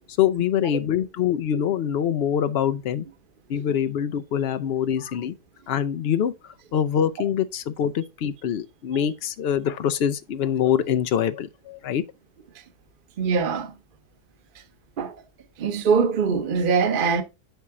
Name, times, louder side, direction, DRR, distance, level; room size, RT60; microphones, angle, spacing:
voice 1, 0.2-3.1 3.5-5.3 5.7-6.3 6.7-12.0, left 9 dB, 90° left, 0.5 m, -24 dB
voice 2, 13.2-13.7 15.0-15.2 15.6-17.2, right 5 dB, 40° right, 0.9 m, -22 dB
10.5 x 4.4 x 3.6 m
omnidirectional pair, 1.7 m